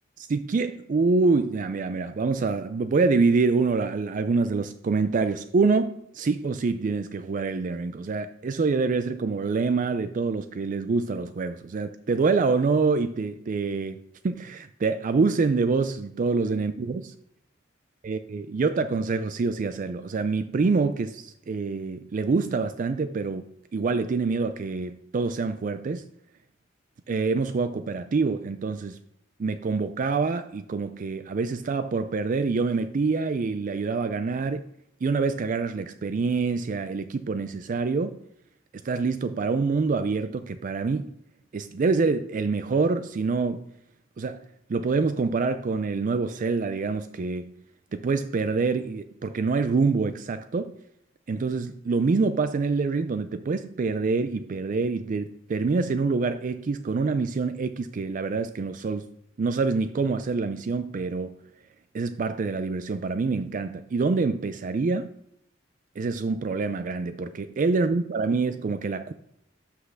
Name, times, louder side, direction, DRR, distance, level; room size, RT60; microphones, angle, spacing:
voice 1, 0.2-17.1 18.0-26.1 27.1-29.0 29.4-34.6 35.0-38.2 38.8-41.1 41.5-43.7 44.2-44.4 44.7-47.5 47.9-50.7 51.3-59.0 59.4-61.4 61.9-65.1 66.0-69.1, right 4 dB, 45° right, 0.4 m, -26 dB
5.9 x 5.6 x 6.4 m
head